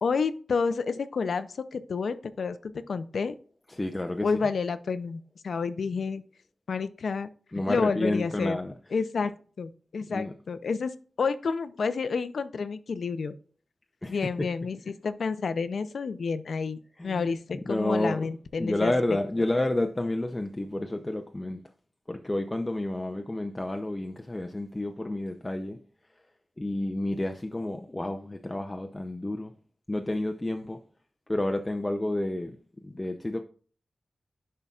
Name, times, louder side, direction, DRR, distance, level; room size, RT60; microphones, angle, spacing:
voice 1, 0.0-3.3 4.2-6.2 6.7-7.3 7.7-8.6 8.9-9.3 9.6-10.9 11.2-13.4 14.1-18.9, left 5 dB, 85° left, 0.5 m, -30 dB
voice 2, 3.7-4.3 7.5-8.7 10.1-10.3 14.0-14.3 17.0-17.4 17.7-18.3 18.6-21.6 22.1-25.8 26.6-29.5 29.9-30.8 31.3-32.5 32.8-33.4, left 1 dB, 15° left, 0.5 m, -30 dB
10.5 x 5.6 x 2.4 m
wide cardioid pair, 135°, 0 cm